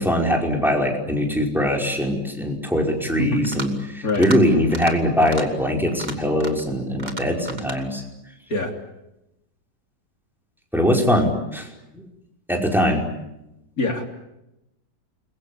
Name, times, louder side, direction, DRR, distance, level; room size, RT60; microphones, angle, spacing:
voice 1, 0.0-8.0 10.7-11.7 11.9-12.0 12.5-13.0, equal, ahead, 0 dB, 5.1 m, -21 dB
voice 2, 3.2-3.4 4.0-4.3 8.5-8.7 13.8-14.0, left 2 dB, 50° left, 3 dB, 3.8 m, -23 dB
sound 1, 3.3-3.8 4.1-4.4 4.7-4.9 5.2-5.4 5.9-6.7 7.0-7.8, right 2 dB, 25° right, 2.7 m, -34 dB
29.0 x 22.5 x 8.6 m, 0.91 s
omnidirectional pair, 2.0 m